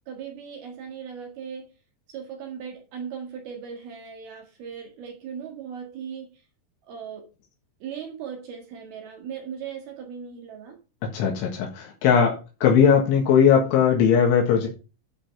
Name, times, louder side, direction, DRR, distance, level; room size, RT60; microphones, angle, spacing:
voice 1, 0.0-1.7 2.1-6.3 6.9-7.2 7.8-10.8, right 7 dB, 60° right, 3.2 m, -38 dB
voice 2, 11.1-12.4 12.6-14.7, left 7 dB, 80° left, 4.1 m, -19 dB
11.5 x 5.0 x 5.8 m
omnidirectional pair, 5.6 m